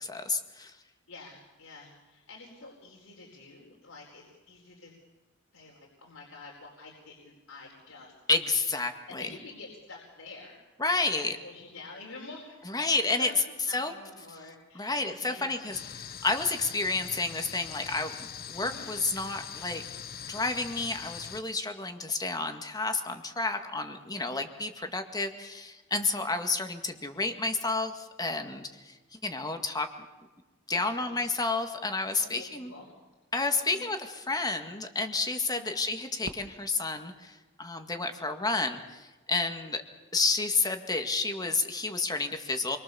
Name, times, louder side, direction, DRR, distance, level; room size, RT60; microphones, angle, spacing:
voice 1, 0.1-0.7 8.3-9.3 10.8-11.4 12.7-13.3 13.7-13.9 14.8-15.8 16.2-18.1 18.5-19.8 20.3-29.0 29.2-29.9 30.7-32.7 33.3-39.8 40.1-42.8, left 3 dB, 20° left, 6 dB, 2.0 m, -30 dB
voice 2, 1.1-4.9 5.5-8.1 9.1-10.6 11.1-15.8 18.6-18.9 30.7-31.2 32.1-32.9 33.6-33.8 35.5-35.8, left 3 dB, 80° left, -1 dB, 4.5 m, -48 dB
sound 1, 15.7-21.4, left 8 dB, 45° left, 1.0 m, -42 dB
Fireworks, 36.2-38.4, right 1 dB, 45° right, 1.4 m, -48 dB
28.0 x 23.0 x 7.1 m, 1.2 s
head